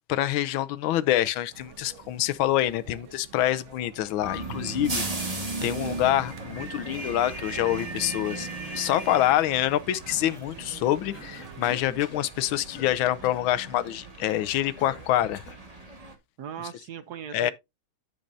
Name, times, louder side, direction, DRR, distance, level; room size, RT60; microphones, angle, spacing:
voice 1, 0.1-8.5 8.7-15.4 17.3-17.5, left 13 dB, 85° left, 1.5 m, -26 dB
sound 1, 1.5-11.8, right 8 dB, 90° right, 2.0 m, -50 dB
sound 2, 4.2-16.1, right 3 dB, 20° right, 1.4 m, -37 dB
voice 2, 5.6-5.9 11.7-12.0 16.4-17.5, right 8 dB, 65° right, 1.1 m, -40 dB
Cough, 11.1-12.3 12.7-13.0 13.2-13.5 14.8-15.7, left 5 dB, 45° left, 1.5 m, -46 dB
10.5 x 6.7 x 2.6 m
omnidirectional pair, 2.2 m